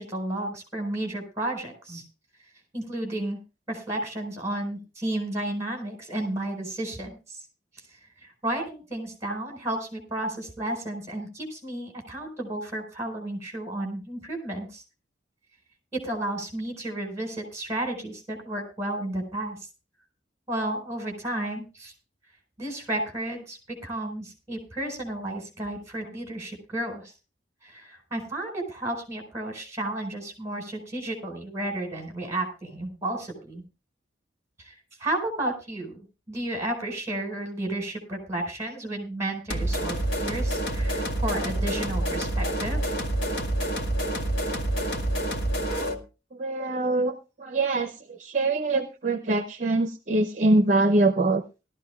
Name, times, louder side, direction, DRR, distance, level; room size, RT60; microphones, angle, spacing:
voice 1, 0.0-2.0 2.7-3.4 3.7-7.4 8.4-14.8 15.9-19.6 20.5-21.9 22.6-27.1 27.6-33.6 34.6-34.7 35.0-42.9, right 1 dB, 15° right, 2 dB, 4.4 m, -32 dB
sound 1, 39.5-46.0, right 1 dB, 70° left, 1.7 m, -27 dB
voice 2, 46.3-51.4, right 2 dB, 40° right, 7 dB, 0.7 m, -24 dB
18.5 x 13.0 x 2.3 m, 0.30 s
head